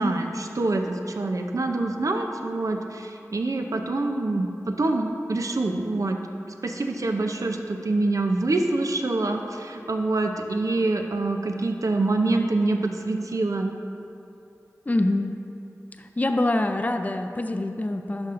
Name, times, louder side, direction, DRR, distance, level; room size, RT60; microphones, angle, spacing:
voice 1, 0.0-6.2 6.6-13.7, right 2 dB, 70° right, 4 dB, 0.5 m, -25 dB
voice 2, 14.9-15.4 16.0-18.3, left 1 dB, 30° left, 6 dB, 0.4 m, -25 dB
11.0 x 6.3 x 2.5 m, 2.8 s
wide cardioid pair, 45°, 6 cm